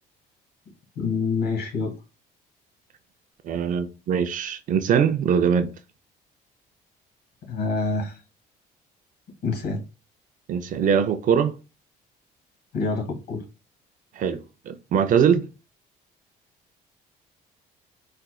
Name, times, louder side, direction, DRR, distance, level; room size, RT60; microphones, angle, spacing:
voice 1, 0.9-1.9 7.5-8.2 9.4-9.8 12.7-13.4, left 4 dB, 75° left, 1.6 m, -26 dB
voice 2, 3.4-5.7 10.5-11.5 14.2-14.4 14.7-15.5, right 7 dB, 50° right, 0.4 m, -22 dB
4.1 x 2.4 x 2.2 m
cardioid pair, 110°, 17 cm